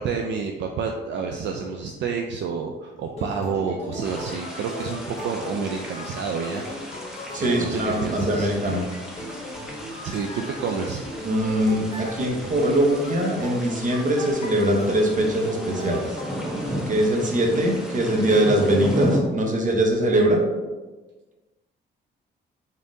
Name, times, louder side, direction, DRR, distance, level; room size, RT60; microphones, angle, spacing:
voice 1, 0.0-6.6 6.9-7.0 7.4-8.5 10.0-11.0, right 5 dB, 65° right, 3 dB, 0.4 m, -29 dB
sound 1, 3.0-16.7, left 1 dB, 35° left, 1.0 m, -38 dB
sound 2, 4.0-19.2, equal, 5° right, 0.8 m, -34 dB
voice 2, 7.3-8.8 11.2-16.0 16.9-20.4, right 1 dB, 40° right, 0 dB, 0.9 m, -22 dB
3.8 x 3.5 x 2.6 m, 1.2 s
cardioid pair, 90°, 20 cm